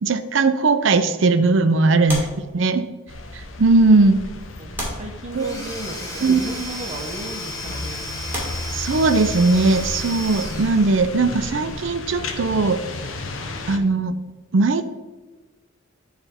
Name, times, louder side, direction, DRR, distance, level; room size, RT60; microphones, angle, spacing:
voice 1, 0.0-2.3 2.5-2.9 3.6-4.2 5.3-5.7 6.2-6.4 8.7-12.8 13.7-14.1 14.5-14.8, right 3 dB, 65° right, 10 dB, 0.5 m, -18 dB
sound 1, 2.1-3.1 3.9-4.0 4.7-5.8 6.8-7.0 7.7-7.8 8.3-9.5 11.4-13.2 13.5-13.7, equal, 10° right, 2.0 m, -35 dB
sound 2, 3.1-13.8, left 2 dB, 80° left, 0.7 m, -34 dB
voice 2, 4.6-8.0, right 1 dB, 35° right, 3 dB, 0.9 m, -34 dB
Domestic sounds home sounds / Tools, 5.3-11.4, left 1 dB, 15° left, 1.1 m, -34 dB
9.9 x 3.4 x 4.3 m, 1.3 s
head